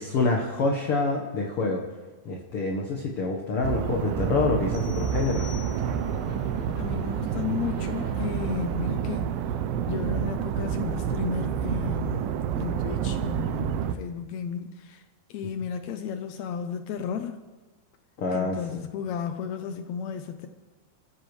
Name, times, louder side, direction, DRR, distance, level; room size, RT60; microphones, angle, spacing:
voice 1, 0.0-1.8 2.2-5.5 18.2-18.6, left 3 dB, 60° left, 1 dB, 1.6 m, -26 dB
sound 1, 3.6-13.9, right 9 dB, 85° right, 2.6 m, -29 dB
sound 2, 4.7-6.2, left 7 dB, 60° right, 5.0 m, -47 dB
Splash splatter, 5.2-9.2, right 1 dB, 20° right, 1.0 m, -42 dB
voice 2, 6.8-9.3 9.9-15.0 15.3-17.4 18.3-20.5, left 7 dB, 90° left, 7 dB, 1.6 m, -33 dB
28.0 x 15.5 x 3.2 m, 1.3 s
omnidirectional pair, 4.2 m